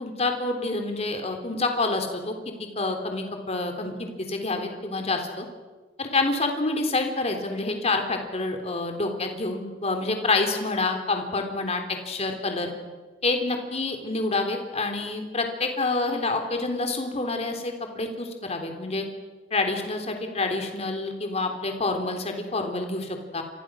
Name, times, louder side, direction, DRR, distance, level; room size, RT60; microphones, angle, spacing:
voice 1, 0.0-5.5 6.0-12.7 13.2-19.1 19.5-23.4, left 3 dB, 35° left, 5 dB, 3.5 m, -27 dB
29.0 x 25.5 x 6.4 m, 1.3 s
head